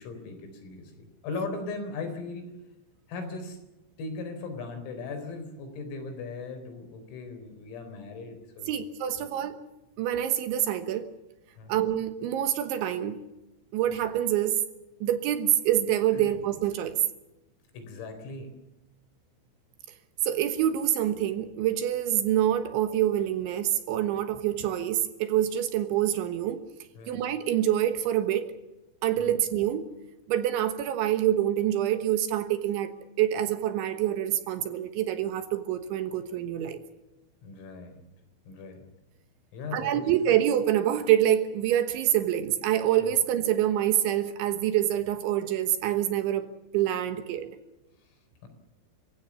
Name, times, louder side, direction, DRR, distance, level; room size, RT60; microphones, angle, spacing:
voice 1, 0.0-2.5 3.1-3.6 4.0-8.9 9.2-9.3 11.6-11.7 16.1-16.4 17.7-18.5 27.0-27.2 29.2-29.3 37.4-38.0 38.5-38.8 39.5-40.1 43.1-43.2 48.4-48.5, left 3 dB, 85° left, 6.8 m, -38 dB
voice 2, 8.7-9.5 10.0-11.1 11.7-13.2 13.7-14.6 15.0-17.0 20.2-26.6 27.1-28.5 29.0-29.8 30.3-36.8 39.7-47.6, right 11 dB, 70° right, 3.4 m, -26 dB
28.5 x 16.5 x 7.2 m
omnidirectional pair, 6.0 m